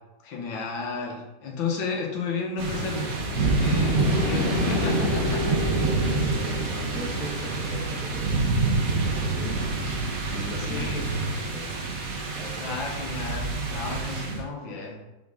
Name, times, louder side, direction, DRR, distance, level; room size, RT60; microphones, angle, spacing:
voice 1, 0.2-6.2 10.6-11.0 12.6-15.0, left 4 dB, 80° left, 0 dB, 1.9 m, -33 dB
sound 1, 2.6-14.4, right 3 dB, 55° right, 1.2 m, -27 dB
sound 2, 2.8-10.1 11.1-11.2, left 2 dB, 50° left, 0.6 m, -30 dB
voice 2, 5.0-9.6 10.3-11.7 12.3-12.8 14.6-14.8, equal, ahead, -3 dB, 0.5 m, -40 dB
4.6 x 4.3 x 4.8 m, 0.99 s
omnidirectional pair, 2.1 m